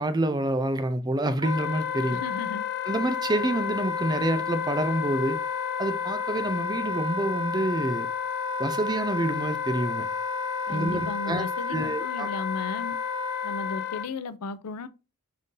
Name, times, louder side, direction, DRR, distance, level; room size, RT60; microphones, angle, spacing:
voice 1, 0.0-2.2 2.9-5.4 5.8-8.1 8.6-10.1 10.7-11.4 11.7-12.3, right 1 dB, 20° right, 0.4 m, -27 dB
Wind instrument woodwind instrument, 1.4-14.1, left 6 dB, 50° left, 0.6 m, -31 dB
voice 2, 2.1-2.6 10.7-13.0 13.4-14.9, left 4 dB, 90° left, 0.5 m, -35 dB
5.4 x 2.7 x 3.7 m
head